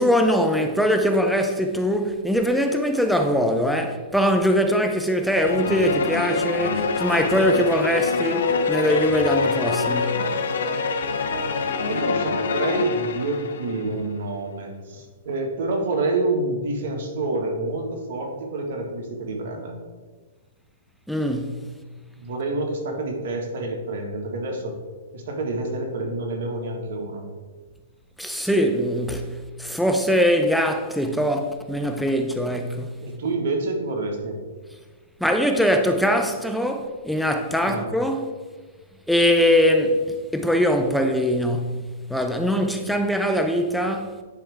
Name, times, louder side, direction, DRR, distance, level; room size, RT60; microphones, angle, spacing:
voice 1, 0.0-10.2 21.1-21.7 28.2-32.9 35.2-38.3 39.1-41.8 42.1-44.2, equal, ahead, 0.6 m, -22 dB
sound 1, 5.4-13.9, left 4 dB, 75° left, 0.8 m, -25 dB
voice 2, 11.8-19.8 22.2-24.8 25.1-27.3 33.0-34.4 37.6-37.9, right 2 dB, 60° right, 1.9 m, -28 dB
10.0 x 3.4 x 4.9 m
hypercardioid pair, 140°, 0 cm